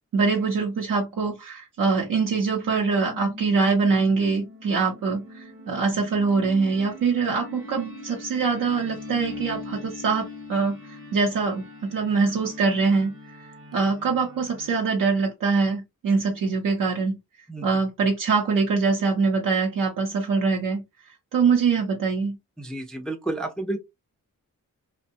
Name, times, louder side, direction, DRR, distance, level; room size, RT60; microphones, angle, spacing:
voice 1, 0.1-13.1 13.7-17.2 17.6-20.8 21.3-22.4, right 4 dB, 75° right, 0.7 m, -23 dB
sound 1, 2.3-14.8, left 2 dB, 40° right, 0.8 m, -41 dB
voice 2, 22.6-23.8, right 2 dB, ahead, 0.4 m, -30 dB
2.6 x 2.1 x 2.6 m
wide cardioid pair, 110°, 33 cm